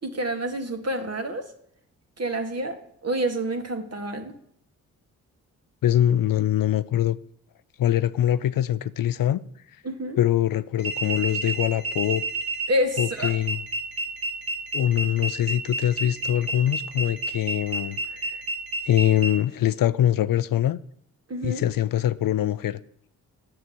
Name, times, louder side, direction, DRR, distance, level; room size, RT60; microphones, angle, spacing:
voice 1, 0.0-1.5 2.2-4.3 9.8-10.2 12.7-13.3 21.3-21.6, right 1 dB, 40° right, 2.1 m, -28 dB
voice 2, 5.8-7.2 7.8-9.4 10.2-12.2 13.0-13.6 14.7-18.4 18.8-20.8 21.4-22.8, left 11 dB, 60° left, 0.6 m, -23 dB
sound 1, 10.8-19.3, right 2 dB, 70° right, 2.1 m, -30 dB
7.4 x 6.1 x 7.8 m
supercardioid pair, 45°, 38 cm